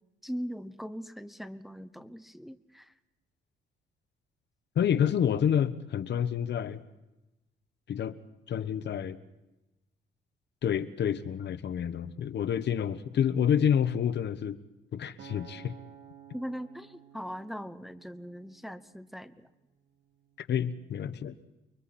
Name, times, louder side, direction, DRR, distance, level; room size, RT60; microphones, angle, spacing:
voice 1, 0.2-2.9 16.3-19.5, equal, ahead, 11 dB, 0.9 m, -40 dB
voice 2, 4.7-6.8 7.9-8.1 8.5-9.2 10.6-14.6 14.9-15.7 20.4-21.3, left 8 dB, 60° left, 12 dB, 1.1 m, -28 dB
Acoustic guitar, 15.2-19.5 20.1-20.4, right 8 dB, 65° right, 2.1 m, -53 dB
30.0 x 23.5 x 4.3 m, 1.0 s
cardioid pair, 90°, 20 cm